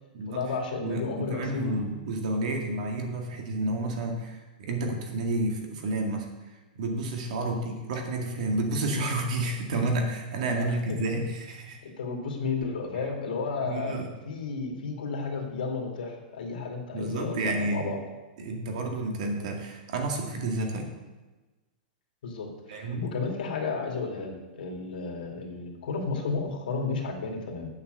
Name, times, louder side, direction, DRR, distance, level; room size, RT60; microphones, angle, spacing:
voice 1, 0.2-1.8 7.5-7.6 10.5-11.0 11.8-14.0 14.2-18.0 22.2-27.7, left 4 dB, 70° left, 2 dB, 2.5 m, -33 dB
voice 2, 0.8-6.3 6.8-11.8 13.6-14.1 16.9-17.9 18.4-20.9 22.7-23.1, right 2 dB, 50° right, 2 dB, 2.1 m, -30 dB
8.7 x 6.8 x 8.0 m, 1.2 s
supercardioid pair, 175°, 5 cm